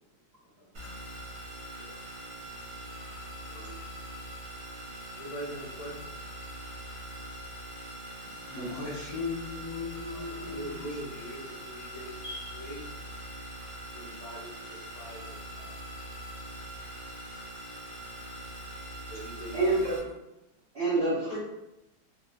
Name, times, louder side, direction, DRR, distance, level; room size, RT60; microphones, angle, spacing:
voice 1, 0.4-0.9 1.3-2.0 3.4-3.7 5.1-6.1 10.0-12.8 13.8-16.7 18.4-19.9 21.2-21.4, right 1 dB, 20° left, -11 dB, 0.9 m, -45 dB
sound 1, 0.7-20.0, right 1 dB, 90° right, 0.6 m, -43 dB
voice 2, 8.5-10.9 12.2-12.4, left 3 dB, 40° left, -9 dB, 0.3 m, -37 dB
voice 3, 19.5-19.9 20.7-21.4, right 2 dB, 55° right, -11 dB, 0.7 m, -26 dB
2.9 x 2.2 x 2.2 m, 0.93 s
omnidirectional pair, 2.0 m